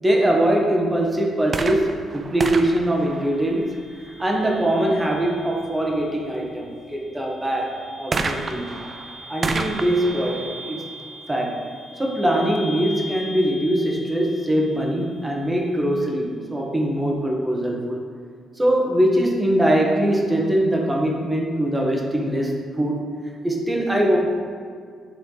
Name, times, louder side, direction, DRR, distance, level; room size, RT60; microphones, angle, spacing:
voice 1, 0.0-3.7 4.2-8.7 9.3-10.8 11.3-11.6 12.0-18.0 18.6-23.1 23.4-24.2, right 1 dB, 15° right, -1 dB, 1.3 m, -22 dB
sound 1, 1.4-4.0 8.1-11.8 12.6-12.7, right 3 dB, 40° right, 0.5 m, -31 dB
sound 2, 2.8-15.7, left 1 dB, 35° left, 1.0 m, -41 dB
9.9 x 3.4 x 3.9 m, 2.1 s
cardioid pair, 90°, 0 cm